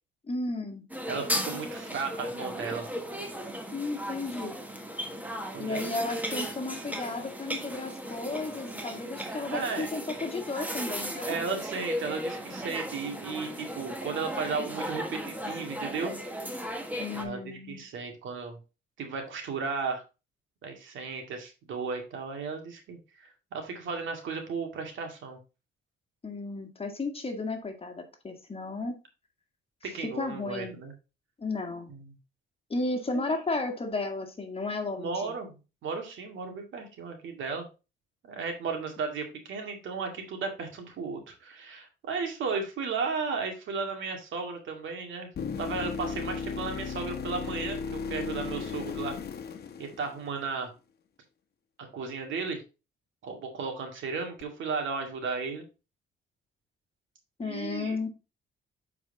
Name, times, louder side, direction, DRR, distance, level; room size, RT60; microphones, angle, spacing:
voice 1, 0.3-0.8 3.7-4.6 5.6-11.3 17.0-17.8 26.2-29.0 29.8-30.8 31.4-31.9 32.7-35.3 57.4-58.1, left 3 dB, 30° left, 5 dB, 1.8 m, -34 dB
sound 1, 0.9-17.2, equal, 10° right, 1.4 m, -36 dB
voice 2, 1.1-2.9 5.5-6.0 9.5-9.9 11.2-16.1 17.1-18.6 19.0-20.0 20.6-25.4 29.8-30.9 31.9-32.1 33.1-33.2 35.0-35.5 35.8-37.7 38.2-45.3 45.6-49.2 49.8-50.7 51.8-52.6 53.2-55.7 57.4-58.0, right 4 dB, 75° right, 4 dB, 2.1 m, -35 dB
sound 2, 45.4-50.4 54.4-54.5, left 5 dB, 55° left, 1.1 m, -35 dB
7.0 x 4.7 x 4.0 m, 0.30 s
cardioid pair, 90°, 20 cm